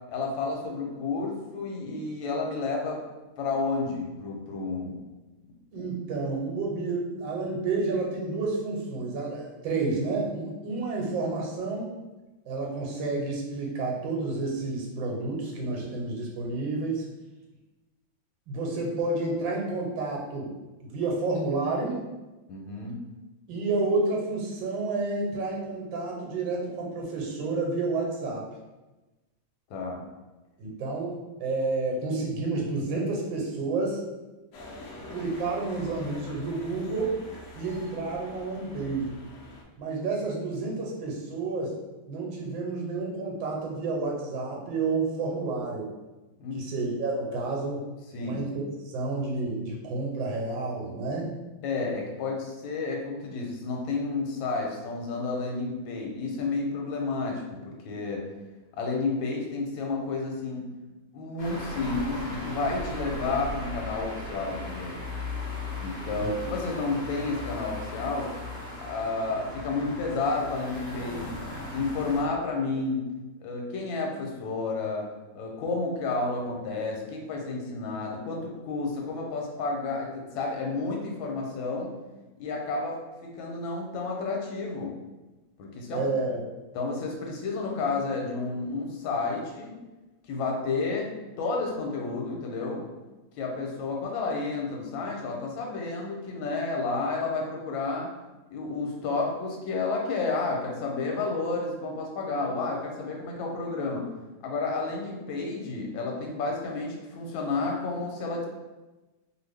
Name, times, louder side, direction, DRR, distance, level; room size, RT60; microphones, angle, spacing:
voice 1, 0.1-3.0 3.4-5.0 5.8-5.9 22.5-23.0 29.7-30.0 46.4-46.6 48.1-48.4 51.6-58.2 58.7-60.7 61.1-65.0 65.8-68.3 68.8-71.4 71.7-73.1 73.4-75.1 75.3-81.9 82.4-85.0 85.6-86.1 86.7-89.8 90.3-91.1 91.4-92.9 93.4-98.1 98.5-104.0 104.4-108.5, left 3 dB, 90° left, 0 dB, 1.4 m, -31 dB
voice 2, 5.7-11.9 12.5-17.0 18.5-20.5 20.8-22.0 23.5-28.4 30.6-34.0 35.1-37.2 37.5-39.2 39.8-41.8 42.1-45.9 46.5-47.8 48.2-48.6 48.9-51.4 66.2-66.3 85.9-86.4, right 3 dB, 85° right, -1 dB, 1.4 m, -30 dB
sound 1, 34.5-39.6, left 1 dB, 70° left, 1.1 m, -45 dB
sound 2, 61.4-72.2, left 2 dB, 35° left, 0.7 m, -37 dB
3.0 x 2.5 x 3.3 m, 1.1 s
omnidirectional pair, 2.1 m